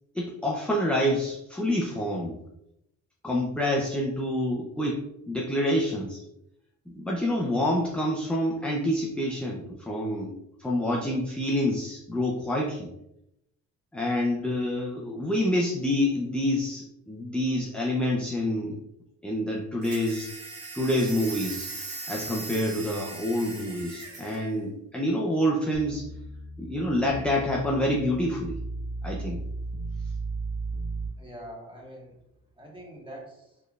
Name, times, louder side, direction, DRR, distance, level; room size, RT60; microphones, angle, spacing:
voice 1, 0.1-2.4 3.2-6.2 6.9-10.3 10.6-12.9 13.9-18.8 19.2-20.3 20.7-21.7 22.1-26.1 26.6-28.6 29.0-29.4, left 1 dB, 5° left, -2 dB, 0.5 m, -27 dB
sound 1, 19.8-24.4, right 3 dB, 50° right, 1.1 m, -39 dB
sound 2, 25.7-31.1, right 2 dB, 40° left, 1.1 m, -35 dB
voice 2, 31.2-32.2 32.6-33.6, right 1 dB, 15° right, -2 dB, 1.4 m, -44 dB
4.2 x 3.3 x 2.4 m, 0.82 s
cardioid pair, 90°, 30 cm